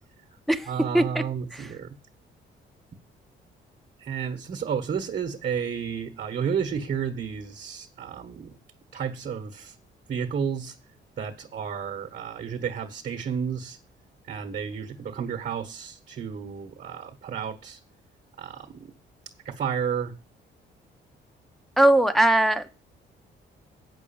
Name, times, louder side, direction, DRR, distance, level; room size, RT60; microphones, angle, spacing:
voice 1, 0.7-1.9 4.0-8.5 8.9-9.7 10.1-10.8 11.2-13.8 14.3-17.8 18.4-18.9 19.4-20.1, right 7 dB, 50° right, 5 dB, 1.4 m, -31 dB
voice 2, 21.8-22.7, right 1 dB, ahead, 6 dB, 1.0 m, -19 dB
8.3 x 6.3 x 7.1 m, 0.34 s
cardioid pair, 90°, 20 cm